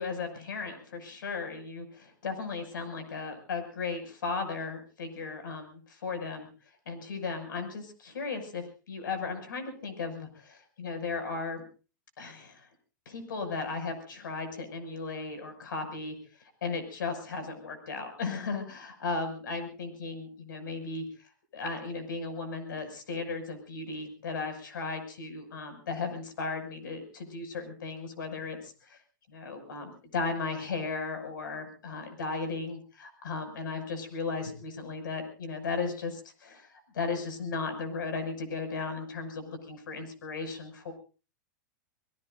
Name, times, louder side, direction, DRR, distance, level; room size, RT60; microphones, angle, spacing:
voice 1, 0.0-6.5 6.9-11.6 12.2-12.7 13.1-16.2 16.6-21.0 21.5-29.0 29.3-40.9, left 4 dB, 85° left, 7 dB, 6.3 m, -36 dB
25.5 x 21.5 x 2.6 m, 0.35 s
hypercardioid pair, 135°, 10 cm